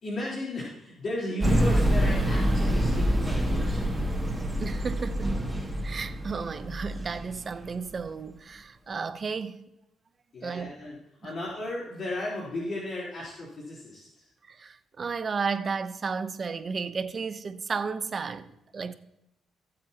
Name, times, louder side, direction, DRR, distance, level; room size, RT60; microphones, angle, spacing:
voice 1, 0.0-4.2 10.3-14.2, left 1 dB, 50° left, 3.8 m, -35 dB
sound 1, 1.4-7.4 8.0-8.1, equal, 15° right, 2.5 m, -26 dB
voice 2, 4.6-5.5 5.8-9.6 10.4-10.8 11.2-11.3 14.5-18.9, right 5 dB, 40° right, 0.9 m, -33 dB
20.0 x 7.7 x 2.9 m
cardioid pair, 90°, 0 cm